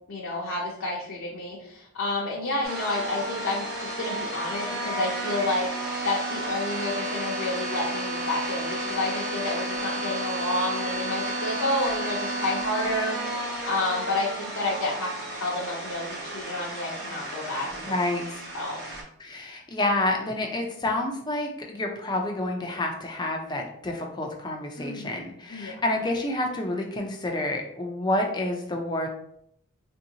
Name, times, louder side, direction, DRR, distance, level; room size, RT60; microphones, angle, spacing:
voice 1, 0.1-17.9 18.5-18.9 24.8-25.2 25.5-26.0, left 2 dB, 70° left, -4 dB, 0.7 m, -30 dB
sound 1, 2.6-19.0, right 1 dB, 45° right, 0.8 m, -32 dB
voice 2, 17.9-18.4 19.2-29.1, left 1 dB, 20° left, 1 dB, 0.4 m, -29 dB
3.5 x 2.7 x 2.8 m, 0.71 s
head